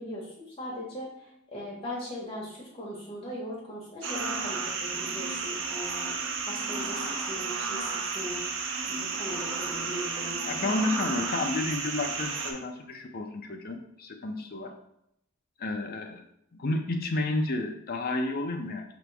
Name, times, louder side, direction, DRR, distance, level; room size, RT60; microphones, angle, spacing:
voice 1, 0.0-6.1 6.5-8.5 8.8-10.8, left 1 dB, 25° left, -5 dB, 1.5 m, -39 dB
sound 1, 4.0-12.5, right 4 dB, 60° right, 0.6 m, -32 dB
voice 2, 10.4-14.7 15.6-16.2 16.5-18.8, left 2 dB, 45° left, 4 dB, 0.5 m, -31 dB
5.0 x 3.0 x 3.4 m, 0.78 s
head